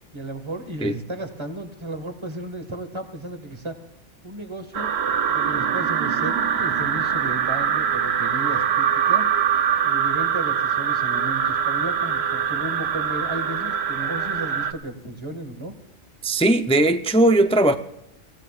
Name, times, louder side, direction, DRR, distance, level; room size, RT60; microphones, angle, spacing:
voice 1, 0.1-3.8 4.2-4.9 5.3-9.3 9.8-15.7, right 1 dB, 20° right, 1.8 m, -34 dB
sound 1, 4.7-14.7, right 8 dB, 60° right, 1.0 m, -23 dB
voice 2, 16.2-17.8, right 1 dB, 10° left, 0.3 m, -18 dB
25.0 x 16.5 x 2.5 m
omnidirectional pair, 1.3 m